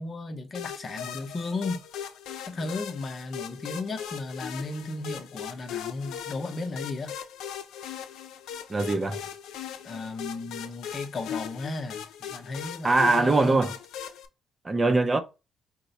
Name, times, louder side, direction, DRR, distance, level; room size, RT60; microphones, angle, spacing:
voice 1, 0.0-1.8 2.5-7.2 9.8-13.6, left 3 dB, 45° left, 0.8 m, -34 dB
sound 1, 0.5-14.3, left 9 dB, 85° left, 0.5 m, -39 dB
voice 2, 8.7-9.2 12.8-13.7 14.6-15.2, right 3 dB, 25° right, 0.6 m, -22 dB
4.5 x 2.1 x 4.1 m
cardioid pair, 90°, 0 cm